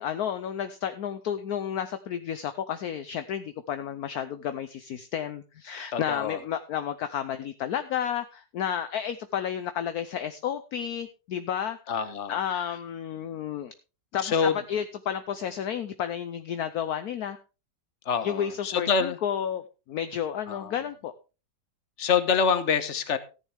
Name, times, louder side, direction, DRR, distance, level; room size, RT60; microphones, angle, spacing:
voice 1, 0.0-11.8 12.3-13.7 14.1-17.4 18.2-19.6 19.9-21.1, left 9 dB, 65° left, 10 dB, 1.1 m, -31 dB
voice 2, 5.9-6.4 11.9-12.4 14.2-14.6 18.0-19.2 20.5-20.7 22.0-23.2, left 6 dB, 45° left, 11 dB, 1.3 m, -26 dB
14.0 x 10.0 x 3.5 m, 0.32 s
omnidirectional pair, 1.9 m